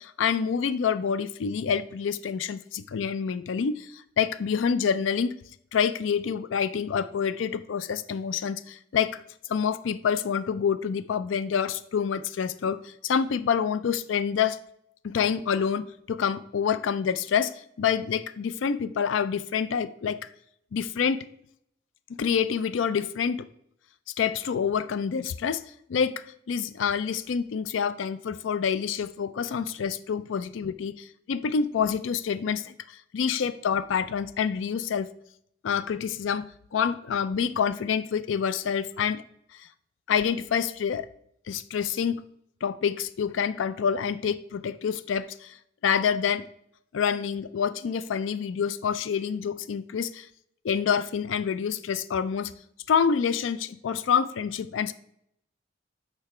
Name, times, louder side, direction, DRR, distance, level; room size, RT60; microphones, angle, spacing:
voice 1, 0.0-5.3 5.7-9.2 9.5-14.6 15.0-20.2 20.7-21.3 22.2-23.5 24.2-25.6 25.9-35.1 35.6-39.2 39.5-39.7 40.1-41.1 41.5-42.2 42.6-45.6 45.8-46.5 46.9-50.3 50.6-52.5 52.9-54.9, left 7 dB, 90° left, 15 dB, 0.4 m, -27 dB
6.8 x 5.7 x 4.3 m, 0.72 s
head